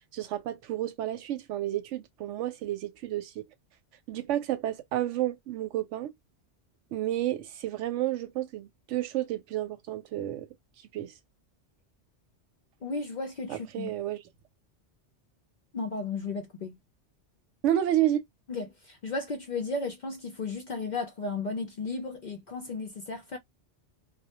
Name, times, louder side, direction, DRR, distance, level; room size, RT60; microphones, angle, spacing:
voice 1, 0.1-3.4 4.1-6.1 6.9-10.5 10.9-11.1 13.5-14.2 17.6-18.2, right 13 dB, 85° right, 0.9 m, -30 dB
voice 2, 12.8-13.9 15.7-16.8 18.5-23.4, left 3 dB, 55° left, 0.5 m, -34 dB
2.2 x 2.1 x 2.8 m
omnidirectional pair, 1.2 m